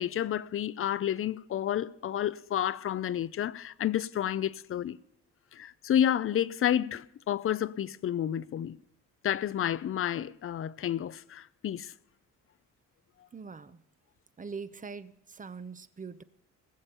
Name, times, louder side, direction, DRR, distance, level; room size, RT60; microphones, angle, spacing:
voice 1, 0.0-5.0 5.5-8.8 9.2-11.9, left 10 dB, 45° left, 0.6 m, -30 dB
voice 2, 13.3-13.8 14.4-16.2, right 5 dB, 25° right, 0.8 m, -42 dB
19.0 x 7.3 x 6.9 m
cardioid pair, 90°, 30 cm